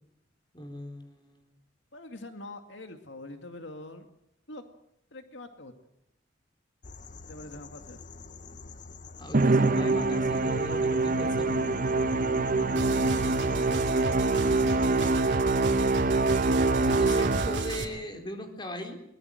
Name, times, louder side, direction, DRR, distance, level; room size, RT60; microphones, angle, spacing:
voice 1, 0.5-1.5 9.2-11.6 14.8-15.5 16.8-19.0, equal, 25° left, 5 dB, 4.1 m, -39 dB
voice 2, 1.9-4.1 4.5-4.6 5.1-5.7 7.2-8.0 12.6-13.1 16.7-17.2, left 2 dB, 75° left, 7 dB, 2.1 m, -44 dB
sound 1, 6.8-15.1, left 2 dB, 40° left, 0.9 m, -44 dB
Musical instrument, 9.3-17.9, right 3 dB, 45° right, 0.8 m, -25 dB
sound 2, 12.8-17.8, right 2 dB, 75° right, 3.0 m, -35 dB
22.5 x 20.5 x 7.7 m, 0.79 s
head